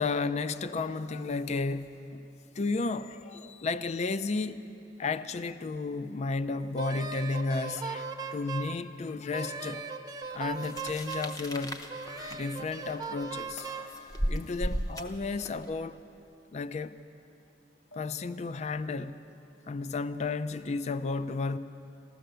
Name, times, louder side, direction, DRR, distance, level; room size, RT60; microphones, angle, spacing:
voice 1, 0.0-2.3 2.6-4.6 5.0-9.8 10.3-11.8 12.3-13.8 14.3-16.0 16.5-17.0 18.0-19.2 19.7-21.6, left 3 dB, 40° left, 0.4 m, -33 dB
Wind instrument woodwind instrument, 6.8-8.8 9.3-11.4 11.9-13.9, right 5 dB, 20° right, 0.7 m, -38 dB
sound 1, 10.6-15.7, equal, 20° left, 0.8 m, -36 dB
sound 2, 13.6-15.2 15.6-15.7 17.2-17.3 17.6-18.3, left 3 dB, 85° left, 3.2 m, -52 dB
15.0 x 13.0 x 6.7 m
head